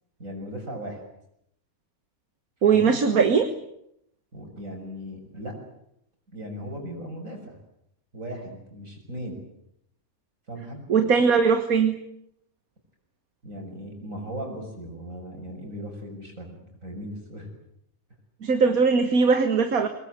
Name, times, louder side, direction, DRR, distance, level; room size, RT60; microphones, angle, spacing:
voice 1, 0.2-1.0 2.6-3.0 4.3-5.6 6.3-7.6 8.1-9.4 10.5-10.8 13.4-17.5, equal, 65° right, 3 dB, 7.2 m, -37 dB
voice 2, 2.6-3.5 10.9-12.0 18.4-19.9, right 5 dB, 85° right, 8 dB, 2.0 m, -20 dB
23.5 x 21.0 x 9.4 m, 0.77 s
omnidirectional pair, 1.5 m